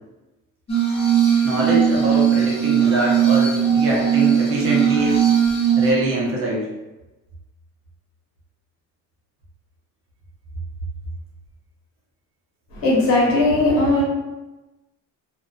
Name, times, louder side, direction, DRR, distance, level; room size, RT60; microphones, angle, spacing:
Glass, 0.7-5.9, right 8 dB, 20° left, 0.4 m, -18 dB
voice 1, 1.4-5.3 5.8-6.7, right 2 dB, 40° right, -3 dB, 0.7 m, -23 dB
voice 2, 12.7-14.0, left 2 dB, 85° left, -4 dB, 1.2 m, -18 dB
2.4 x 2.3 x 2.2 m, 1.1 s
cardioid pair, 160°, 34 cm